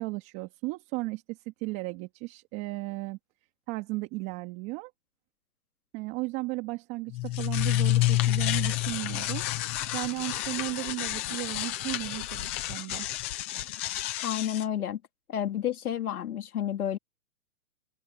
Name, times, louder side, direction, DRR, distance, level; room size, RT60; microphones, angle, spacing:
voice 1, 0.0-3.2 3.7-4.9 5.9-9.4 9.9-13.1, right 23 dB, 25° right, 2.4 m, -35 dB
sound 1, 7.1-14.6, left 16 dB, 10° left, 0.5 m, -29 dB
voice 2, 14.2-15.0 15.3-17.0, left 10 dB, 75° left, 2.6 m, -30 dB
open air
hypercardioid pair, 160°, 45 cm